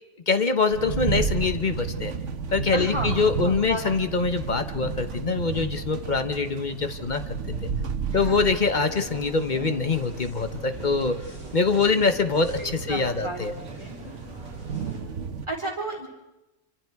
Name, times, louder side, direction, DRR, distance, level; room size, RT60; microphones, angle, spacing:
voice 1, 0.3-2.1 2.5-7.7 8.1-11.2 11.5-13.5, left 4 dB, 40° left, 9 dB, 1.0 m, -24 dB
sound 1, 0.7-15.5, right 6 dB, 65° right, 1.4 m, -33 dB
voice 2, 2.7-3.1 3.4-3.8 8.1-8.4 12.6-14.0 15.5-16.1, right 1 dB, 20° right, 0 dB, 4.0 m, -33 dB
sound 2, 8.8-15.0, right 1 dB, 5° right, 7.4 m, -43 dB
27.0 x 24.5 x 4.7 m, 0.99 s
omnidirectional pair, 1.4 m